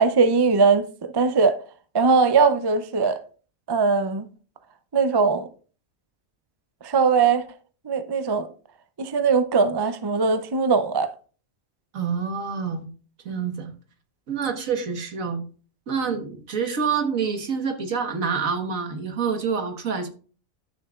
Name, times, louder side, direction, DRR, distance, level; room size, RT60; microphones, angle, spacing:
voice 1, 0.0-1.6 1.9-3.2 3.7-4.3 4.9-5.5 6.8-7.4 7.8-8.5 9.0-11.1, right 5 dB, 40° right, 0.3 m, -20 dB
voice 2, 11.9-12.9 13.3-13.7 14.3-15.4 15.9-20.1, right 6 dB, 75° right, 1.8 m, -27 dB
12.5 x 6.7 x 2.4 m
omnidirectional pair, 1.4 m